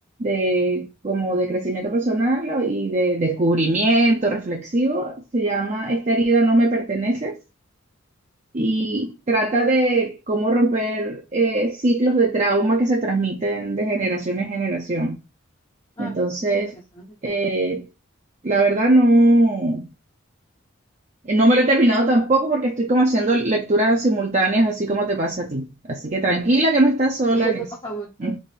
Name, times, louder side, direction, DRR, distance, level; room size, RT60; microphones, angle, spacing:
voice 1, 0.2-7.4 8.5-15.2 16.0-16.8 17.2-17.9 18.4-19.9 21.2-27.5 28.2-28.4, right 2 dB, 35° right, 0.6 m, -20 dB
voice 2, 16.4-17.4 26.3-26.4 27.3-28.4, right 4 dB, 20° left, 0.7 m, -32 dB
3.5 x 2.6 x 4.0 m
head